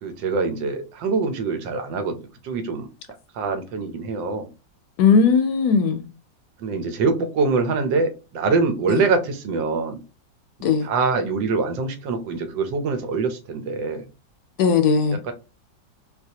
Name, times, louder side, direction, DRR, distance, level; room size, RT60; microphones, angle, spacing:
voice 1, 0.0-2.9 3.3-4.5 6.6-10.0 10.8-14.1 15.2-15.3, right 4 dB, 90° right, 1.5 m, -24 dB
voice 2, 5.0-6.0 8.9-9.0 10.6-10.9 14.6-15.2, left 5 dB, 70° left, 1.0 m, -18 dB
4.1 x 2.3 x 2.7 m
omnidirectional pair, 1.9 m